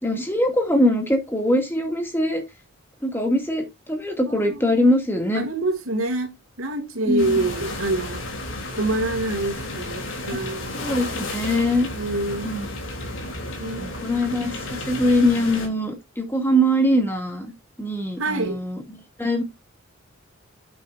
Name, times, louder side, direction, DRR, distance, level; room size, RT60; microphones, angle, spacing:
voice 1, 0.0-2.4 3.0-5.5 7.1-7.5 10.3-10.4 10.7-11.9 12.4-12.7 13.8-17.5 17.8-19.4, equal, 10° left, 2.4 m, -22 dB
voice 2, 4.3-4.7 5.3-6.3 6.6-8.2 8.7-10.7 11.5-12.5 13.6-14.2 18.2-18.6, right 2 dB, 80° right, 2.8 m, -26 dB
sound 1, 7.2-15.7, left 2 dB, 65° left, 3.3 m, -32 dB
8.7 x 8.4 x 2.6 m
head